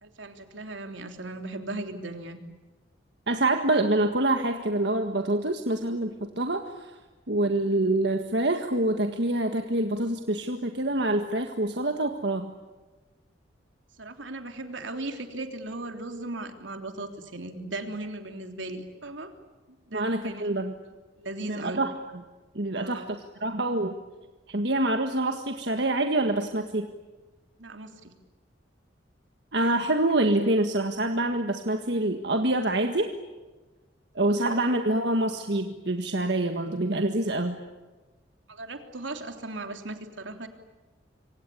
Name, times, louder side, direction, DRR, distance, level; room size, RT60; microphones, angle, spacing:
voice 1, 0.0-2.4 14.0-19.3 19.9-20.4 21.2-21.8 22.8-23.1 27.6-28.1 34.3-34.5 38.5-40.5, right 2 dB, 80° right, 6 dB, 3.3 m, -37 dB
voice 2, 3.3-7.0 7.3-12.5 19.9-20.7 21.5-21.9 22.6-23.9 24.5-26.9 29.5-33.1 34.2-37.6, right 1 dB, 60° right, 5 dB, 1.7 m, -26 dB
26.5 x 25.5 x 8.6 m, 1.2 s
head